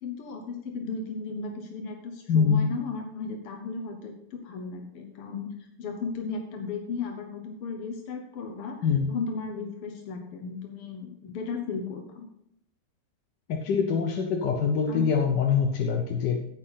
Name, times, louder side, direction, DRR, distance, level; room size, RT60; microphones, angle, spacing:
voice 1, 0.0-8.8 9.1-12.3 14.9-15.1, left 4 dB, 85° left, 3 dB, 2.0 m, -35 dB
voice 2, 2.3-2.7 8.8-9.1 13.5-16.5, left 6 dB, 60° left, 3 dB, 1.3 m, -24 dB
16.0 x 5.9 x 4.0 m, 0.76 s
omnidirectional pair, 2.4 m